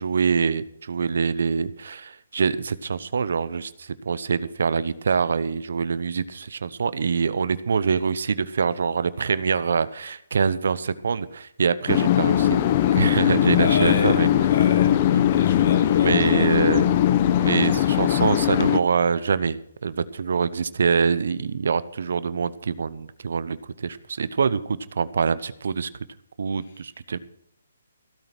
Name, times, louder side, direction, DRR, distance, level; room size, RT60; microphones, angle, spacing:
voice 1, 0.0-14.3 15.1-15.3 16.0-17.0 17.4-25.9 26.4-27.2, right 5 dB, 65° right, 16 dB, 0.9 m, -25 dB
sound 1, 11.9-18.8, left 11 dB, 35° left, 0.9 m, -20 dB
voice 2, 13.6-16.6, left 4 dB, 50° left, 3 dB, 4.1 m, -30 dB
15.5 x 8.9 x 6.0 m, 0.72 s
hypercardioid pair, 145°, 0 cm